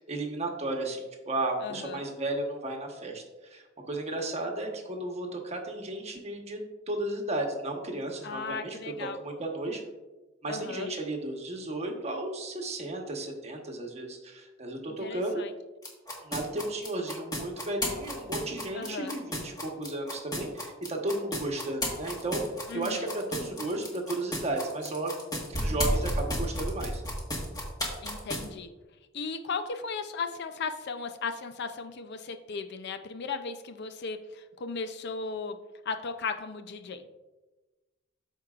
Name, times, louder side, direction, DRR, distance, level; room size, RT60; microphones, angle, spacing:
voice 1, 0.0-6.6 6.9-9.8 10.4-15.4 16.2-22.4 22.7-25.1 25.5-27.0, right 2 dB, 30° right, 2 dB, 1.1 m, -34 dB
voice 2, 1.6-2.0 8.2-9.2 10.5-10.9 15.0-15.5 18.7-19.2 22.7-23.1 28.0-28.7 29.1-35.6 35.9-37.0, left 4 dB, 55° left, 8 dB, 0.5 m, -36 dB
sound 1, 15.8-28.5, equal, 20° left, 1.5 m, -32 dB
13.0 x 4.6 x 2.4 m, 1.1 s
head